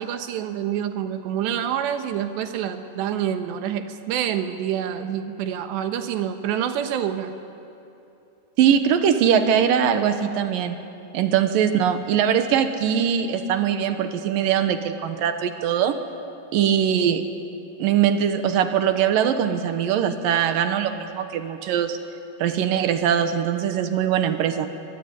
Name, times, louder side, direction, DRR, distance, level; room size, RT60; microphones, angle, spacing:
voice 1, 0.0-7.3, right 9 dB, 90° right, 7 dB, 3.5 m, -27 dB
voice 2, 8.6-10.8 11.1-16.0 16.5-17.2 17.8-22.0 22.4-24.7, right 8 dB, 65° right, 8 dB, 2.5 m, -21 dB
23.0 x 22.5 x 9.9 m, 2.7 s
omnidirectional pair, 4.9 m